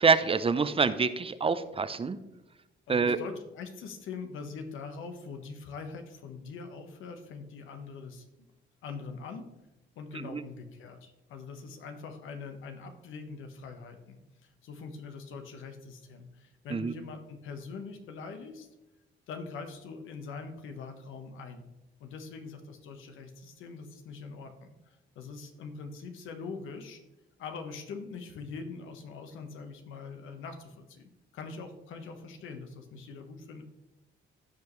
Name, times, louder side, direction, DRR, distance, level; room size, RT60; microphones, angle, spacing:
voice 1, 0.0-2.2 2.9-3.2 10.2-10.4 16.7-16.9, right 5 dB, 30° right, 12 dB, 0.6 m, -26 dB
voice 2, 2.9-8.3 8.8-9.5 10.0-18.7 19.3-21.7 22.0-27.0 27.4-33.6, left 4 dB, 80° left, 6 dB, 1.2 m, -43 dB
15.5 x 5.2 x 3.2 m, 0.96 s
cardioid pair, 90°, 20 cm